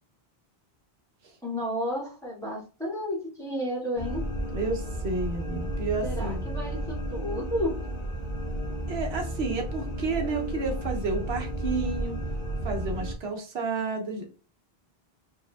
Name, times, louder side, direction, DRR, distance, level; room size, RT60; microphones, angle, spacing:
voice 1, 1.4-4.2 6.0-7.7, equal, 5° left, -7 dB, 2.1 m, -32 dB
sound 1, 3.9-13.1, right 1 dB, 70° left, 1.3 m, -32 dB
voice 2, 4.5-6.4 8.9-12.2 12.6-14.3, right 3 dB, 75° right, 3 dB, 1.1 m, -31 dB
4.6 x 3.3 x 2.3 m, 0.35 s
omnidirectional pair, 1.1 m